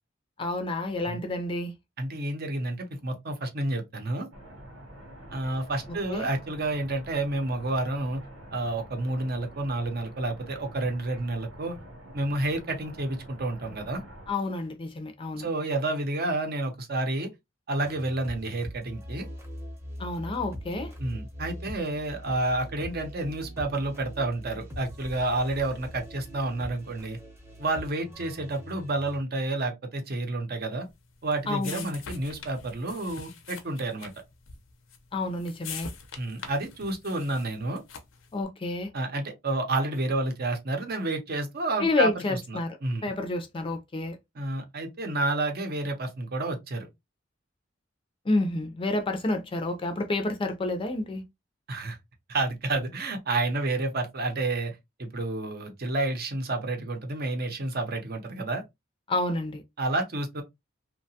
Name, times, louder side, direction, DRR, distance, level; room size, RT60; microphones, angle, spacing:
voice 1, 0.4-1.7 6.1-6.3 14.3-15.5 20.0-20.9 31.5-31.8 35.1-35.9 38.3-38.9 41.8-42.8 43.0-44.2 48.3-51.2 59.1-59.6, left 2 dB, 25° left, 0.4 m, -29 dB
voice 2, 2.0-4.3 5.3-8.2 8.5-11.8 12.1-14.0 15.4-17.3 17.7-19.3 21.0-27.2 27.6-30.9 31.2-34.1 36.2-37.8 38.9-43.1 44.3-46.9 51.7-52.0 52.3-58.6 59.8-60.4, right 2 dB, 50° right, 0.7 m, -30 dB
sound 1, 4.3-14.3, right 1 dB, 80° right, 0.9 m, -47 dB
sound 2, 17.8-29.2, equal, 15° right, 0.7 m, -42 dB
sound 3, 30.9-38.3, left 6 dB, 80° left, 0.6 m, -44 dB
2.8 x 2.2 x 2.7 m
head